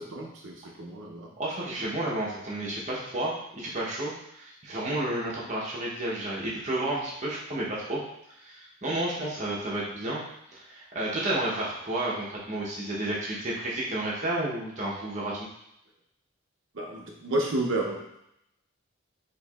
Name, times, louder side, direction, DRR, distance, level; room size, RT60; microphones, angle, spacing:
voice 1, 0.0-1.3 9.1-9.5 16.7-18.2, right 2 dB, 65° right, 0 dB, 0.7 m, -32 dB
voice 2, 1.4-8.0 8.3-10.2 10.5-15.5, right 1 dB, 35° right, -5 dB, 0.9 m, -31 dB
4.5 x 3.0 x 2.4 m, 0.80 s
head